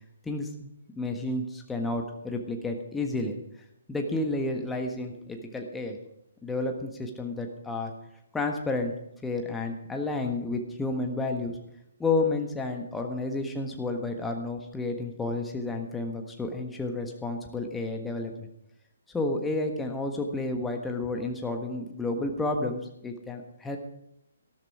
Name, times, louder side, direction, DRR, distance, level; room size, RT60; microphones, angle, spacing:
voice 1, 0.2-0.7 0.9-3.4 3.9-6.0 6.4-7.9 8.3-8.9 9.2-11.6 12.0-18.5 19.1-23.8, left 2 dB, 5° left, 3 dB, 1.5 m, -31 dB
14.0 x 12.5 x 4.8 m, 0.80 s
figure-of-eight pair, 130°, 0 cm